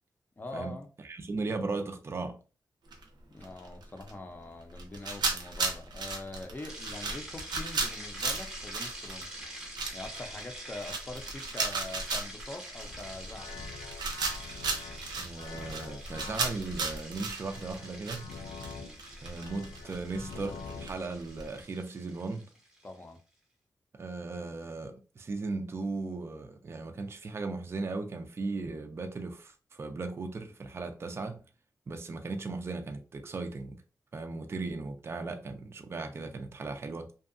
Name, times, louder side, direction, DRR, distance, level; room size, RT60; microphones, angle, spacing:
voice 1, 0.4-0.9 3.3-9.4 9.9-13.6 22.8-23.2, left 2 dB, 25° left, 0.5 m, -43 dB
voice 2, 1.0-2.4 15.2-18.3 19.2-22.5 23.9-31.4 31.9-33.8 34.1-37.1, right 3 dB, 35° right, 0.3 m, -37 dB
sound 1, 2.9-3.0 3.4-4.1 4.8-18.7 19.0-21.5, right 3 dB, 85° right, 0.6 m, -35 dB
sound 2, 6.7-23.0, right 1 dB, 10° right, 0.7 m, -46 dB
sound 3, 12.9-21.0, left 4 dB, 85° left, 0.4 m, -45 dB
2.6 x 2.3 x 2.4 m
wide cardioid pair, 140°, 7 cm